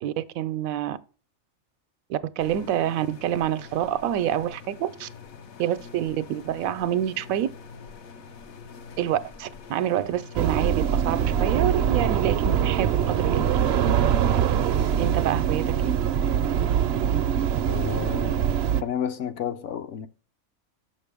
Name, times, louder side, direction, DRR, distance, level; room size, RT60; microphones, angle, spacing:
voice 1, 0.0-1.0 2.1-5.1 5.6-7.5 9.0-13.5 15.0-15.9, right 11 dB, 85° right, 1.0 m, -27 dB
sound 1, 2.4-16.0, left 5 dB, 85° left, 1.3 m, -45 dB
sound 2, 10.4-18.8, right 9 dB, 65° right, 0.7 m, -23 dB
voice 2, 17.7-18.5 18.8-20.1, left 9 dB, 70° left, 0.9 m, -31 dB
6.5 x 6.1 x 3.4 m
omnidirectional pair, 1.4 m